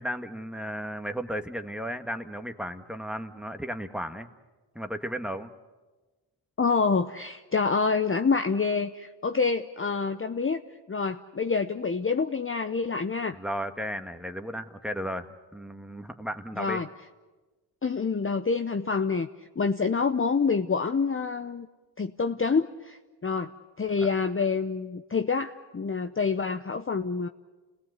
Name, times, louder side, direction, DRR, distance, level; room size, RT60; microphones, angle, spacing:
voice 1, 0.0-4.3 4.7-5.5 13.3-16.8 24.0-24.1, equal, ahead, 7 dB, 1.6 m, -34 dB
voice 2, 6.6-10.6 10.9-13.4 16.6-16.9 17.8-19.3 19.6-21.7 22.0-23.5 23.8-27.3, left 5 dB, 25° left, 8 dB, 0.8 m, -27 dB
28.5 x 18.5 x 8.2 m, 1.2 s
cardioid pair, 50°, 46 cm